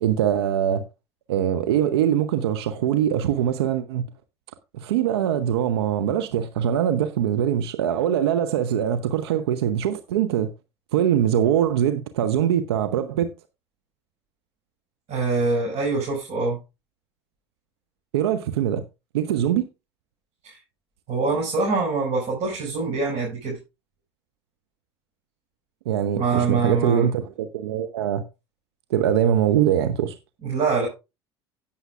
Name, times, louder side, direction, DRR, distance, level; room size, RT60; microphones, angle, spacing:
voice 1, 0.0-0.8 1.3-4.0 4.7-10.5 10.9-13.3 18.1-18.8 19.1-19.7 25.9-28.2 28.9-30.2, right 10 dB, 75° right, 0.8 m, -22 dB
voice 2, 15.1-16.6 20.4-20.6 21.1-23.6 26.1-27.1 30.4-30.9, right 4 dB, 50° right, 5.2 m, -24 dB
17.0 x 7.2 x 2.4 m
figure-of-eight pair, 65°, 14 cm